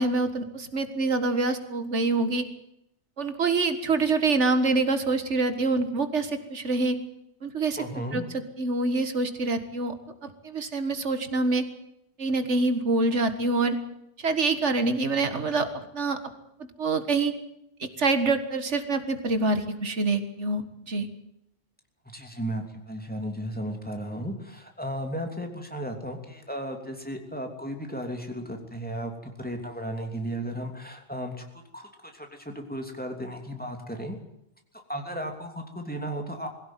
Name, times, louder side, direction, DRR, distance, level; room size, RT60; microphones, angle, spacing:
voice 1, 0.0-2.5 3.2-7.0 7.4-7.8 8.1-8.2 8.6-9.9 10.2-11.7 12.2-13.8 14.2-16.2 16.8-17.3 17.8-21.1, right 3 dB, 85° right, 9 dB, 2.1 m, -26 dB
voice 2, 7.8-8.3 22.1-34.2 34.9-36.5, equal, 10° left, 3 dB, 3.0 m, -35 dB
21.5 x 16.5 x 9.2 m, 0.81 s
omnidirectional pair, 1.2 m